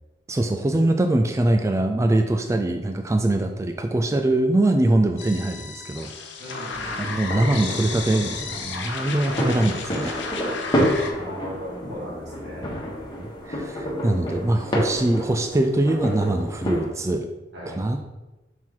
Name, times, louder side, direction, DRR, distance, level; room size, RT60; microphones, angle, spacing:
voice 1, 0.3-6.1 6.5-10.2 13.2-17.3 17.7-18.0, right 1 dB, 15° right, 5 dB, 0.3 m, -23 dB
sound 1, 5.2-11.1, left 4 dB, 70° left, 0.8 m, -33 dB
voice 2, 6.4-7.1 9.2-9.5 11.1-12.7 17.5-17.8, equal, 65° right, -2 dB, 1.7 m, -37 dB
sound 2, 6.7-16.9, equal, 25° left, 1.3 m, -29 dB
5.9 x 4.5 x 3.7 m, 1.1 s
head